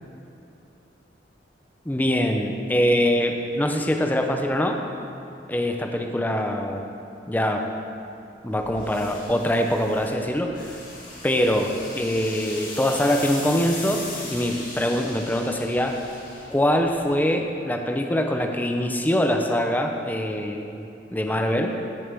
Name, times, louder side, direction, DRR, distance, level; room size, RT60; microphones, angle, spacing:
voice 1, 1.9-4.8 5.5-6.8 7.3-7.6 8.4-10.8 11.2-14.0 14.3-16.0 16.5-20.8 21.1-21.7, equal, 10° left, 3 dB, 0.5 m, -23 dB
sound 1, 8.5-17.1, left 2 dB, 45° left, 2.4 m, -39 dB
15.5 x 7.1 x 3.5 m, 2.7 s
head